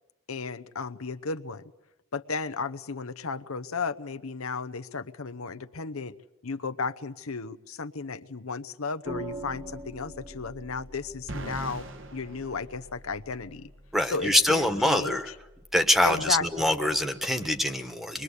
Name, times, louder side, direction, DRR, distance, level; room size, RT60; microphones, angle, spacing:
voice 1, 0.3-1.7 2.1-6.2 6.4-13.7 14.1-15.2 16.0-16.7, left 4 dB, 85° left, 9 dB, 0.9 m, -34 dB
sound 1, 9.0-17.6, right 1 dB, 25° right, 1.8 m, -46 dB
sound 2, 11.3-13.4, right 1 dB, 60° right, 1.8 m, -40 dB
voice 2, 13.9-15.3 15.7-18.2, left 1 dB, ahead, 8 dB, 1.4 m, -24 dB
25.0 x 22.0 x 8.3 m, 0.94 s
head